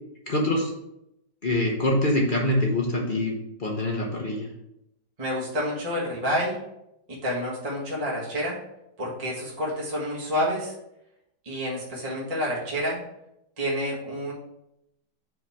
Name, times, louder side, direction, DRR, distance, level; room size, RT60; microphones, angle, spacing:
voice 1, 0.3-0.7 1.4-3.3 3.6-4.5, left 1 dB, 40° left, -1 dB, 0.8 m, -24 dB
voice 2, 5.2-6.6 7.1-8.6 9.0-10.7 11.4-13.0 13.6-14.3, equal, 20° right, -6 dB, 1.4 m, -28 dB
5.4 x 3.5 x 5.7 m, 0.82 s
omnidirectional pair, 2.0 m